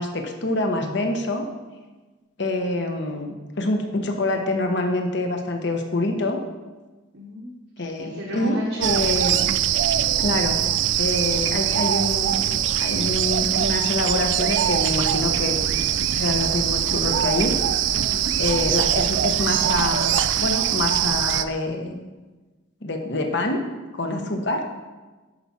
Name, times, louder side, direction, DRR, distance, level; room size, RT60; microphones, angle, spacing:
voice 1, 0.0-1.5 2.4-6.4 7.8-9.4 10.2-10.6 11.0-15.6 16.1-17.6 18.4-22.0 22.8-23.6 23.9-24.6, left 2 dB, 60° left, 4 dB, 0.9 m, -26 dB
voice 2, 7.1-7.5 8.0-9.0 17.9-18.3 24.1-24.4, left 1 dB, 80° right, -3 dB, 1.1 m, -33 dB
sound 1, 8.8-21.4, right 10 dB, 65° right, 0.3 m, -22 dB
sound 2, 14.0-19.1, equal, 40° left, 2.5 m, -38 dB
10.0 x 4.7 x 4.2 m, 1.3 s
head